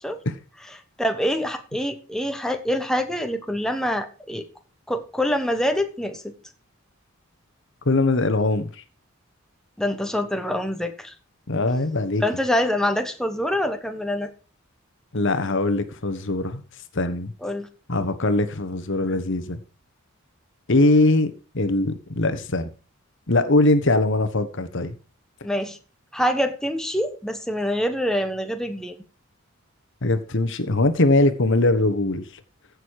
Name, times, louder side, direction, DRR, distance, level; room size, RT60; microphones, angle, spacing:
voice 1, 1.0-4.4 4.9-6.3 9.8-11.1 12.2-14.3 17.4-17.7 25.4-25.8 26.1-28.9, equal, 5° left, 1.1 m, -25 dB
voice 2, 7.8-8.7 11.5-12.2 15.1-16.6 16.9-17.3 17.9-19.6 20.7-22.7 23.3-25.0 30.0-32.2, left 2 dB, 60° left, 1.3 m, -21 dB
15.5 x 6.6 x 4.8 m
head